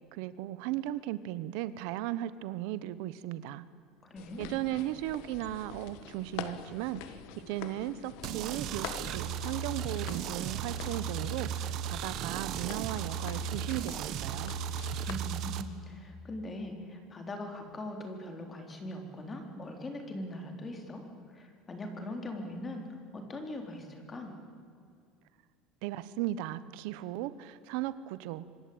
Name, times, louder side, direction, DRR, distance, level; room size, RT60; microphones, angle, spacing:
voice 1, 0.1-3.6 4.4-14.5 25.8-28.4, right 14 dB, 70° right, 15 dB, 1.0 m, -36 dB
voice 2, 4.0-4.6 15.1-22.8 23.1-24.3, left 1 dB, 20° left, 4 dB, 4.0 m, -41 dB
sound 1, 4.2-15.1, left 10 dB, 70° left, 1.7 m, -46 dB
sound 2, 8.2-15.6, right 8 dB, 50° right, 1.6 m, -36 dB
26.0 x 24.5 x 8.8 m, 2.4 s
cardioid pair, 145°, 0 cm